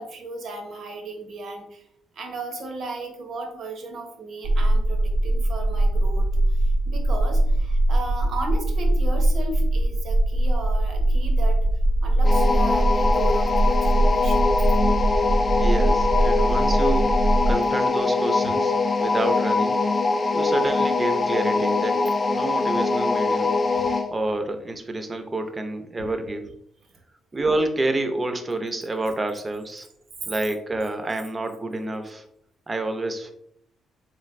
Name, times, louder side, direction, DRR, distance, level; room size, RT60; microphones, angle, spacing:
voice 1, 0.0-1.9 2.1-11.6 12.0-14.5 20.4-20.5 26.0-26.1, right 2 dB, 60° right, 4 dB, 0.8 m, -35 dB
sound 1, 4.4-17.5, right 1 dB, 90° right, 0.5 m, -21 dB
sound 2, 12.2-24.1, left 3 dB, 30° left, 0.3 m, -22 dB
voice 2, 15.6-17.1 17.5-18.7 19.0-19.8 20.3-22.0 22.3-23.5 24.1-26.5 27.3-29.9 30.3-32.2 32.7-33.3, right 2 dB, 25° right, 6 dB, 0.5 m, -28 dB
3.7 x 3.2 x 2.5 m, 0.73 s
cardioid pair, 90°, 0 cm